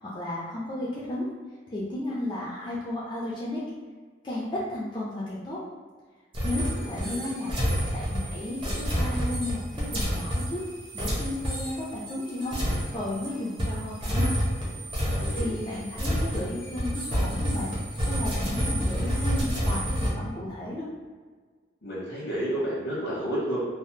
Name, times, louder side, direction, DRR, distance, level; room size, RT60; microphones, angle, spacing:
voice 1, 0.0-1.3 1.7-3.6 4.2-5.6 6.4-7.5 7.9-10.6 10.9-14.3 15.3-17.7 18.0-20.9, left 1 dB, 25° left, -7 dB, 0.4 m, -33 dB
sound 1, 6.3-13.3 13.6-20.1, equal, 30° right, 0.8 m, -29 dB
voice 2, 6.6-7.3 15.1-15.5 21.8-23.6, right 1 dB, 85° left, -7 dB, 0.8 m, -31 dB
3.4 x 2.0 x 2.6 m, 1.5 s
head